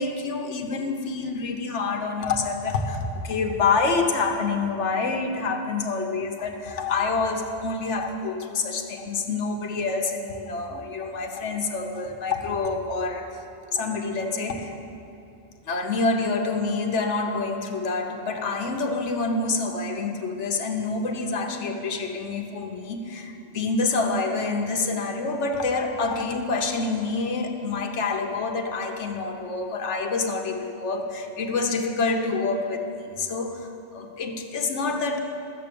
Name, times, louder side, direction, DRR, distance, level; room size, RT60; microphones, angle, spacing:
voice 1, 0.0-13.3 13.7-14.6 15.7-35.2, left 3 dB, 85° left, 4 dB, 1.3 m, -27 dB
13.0 x 7.8 x 6.9 m, 2.9 s
omnidirectional pair, 1.2 m